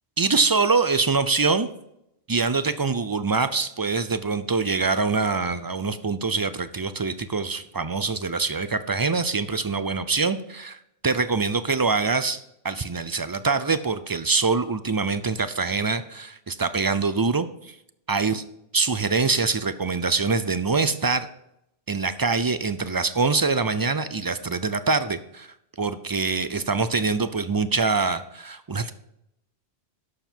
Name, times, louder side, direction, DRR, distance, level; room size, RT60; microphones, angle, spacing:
voice 1, 0.2-1.7 2.3-17.8 18.1-18.4 18.7-21.3 21.9-28.9, right 4 dB, 35° right, 12 dB, 0.3 m, -24 dB
11.5 x 7.2 x 4.4 m, 0.78 s
omnidirectional pair, 1.1 m